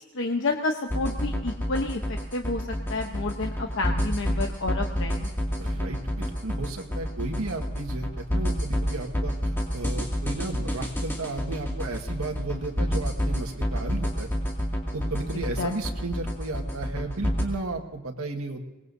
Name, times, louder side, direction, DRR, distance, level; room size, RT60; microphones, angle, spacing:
voice 1, 0.2-2.6 2.9-5.3 15.6-15.7, left 3 dB, 60° left, 3 dB, 1.0 m, -30 dB
sound 1, 0.9-17.4, equal, 10° left, 2.4 m, -28 dB
voice 2, 5.6-14.3 14.9-18.6, right 2 dB, 85° right, 3 dB, 1.7 m, -34 dB
23.5 x 20.0 x 2.8 m, 1.1 s
head